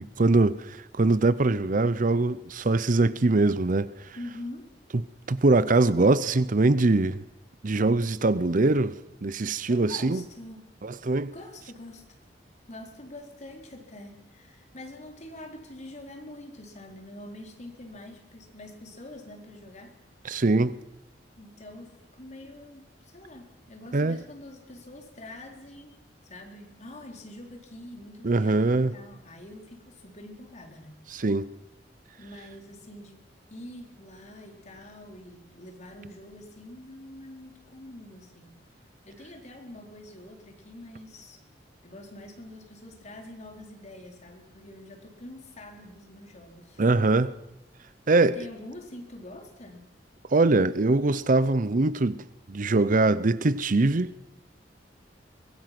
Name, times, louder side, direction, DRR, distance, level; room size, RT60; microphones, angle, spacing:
voice 1, 0.0-3.9 5.3-7.2 7.6-8.9 9.2-10.2 10.8-11.3 20.2-20.8 23.9-24.2 28.2-28.9 31.1-31.5 46.8-47.3 48.1-48.4 50.3-52.2 52.5-54.1, right 2 dB, 50° right, 0.7 m, -22 dB
voice 2, 4.2-4.7 9.7-10.6 11.3-12.0 12.7-19.9 21.4-26.0 26.2-31.0 32.2-33.2 33.5-38.6 39.0-41.4 41.8-46.8 48.2-49.9, left 1 dB, 40° left, 4.1 m, -45 dB
24.0 x 21.0 x 6.1 m
head